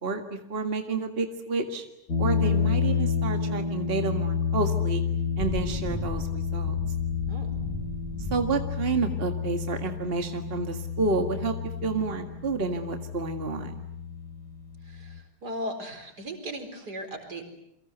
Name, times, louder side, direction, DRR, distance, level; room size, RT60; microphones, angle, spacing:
voice 1, 0.0-1.9 2.2-5.0 5.4-6.7 8.3-13.7, right 4 dB, 35° right, 6 dB, 2.1 m, -30 dB
sound 1, 2.1-15.2, left 6 dB, 85° left, 2.8 m, -30 dB
Thunder / Rain, 4.9-14.0, left 1 dB, 10° left, 4.2 m, -40 dB
voice 2, 14.8-17.5, right 1 dB, 80° right, 6 dB, 4.9 m, -37 dB
29.0 x 23.5 x 8.0 m, 0.77 s
omnidirectional pair, 1.7 m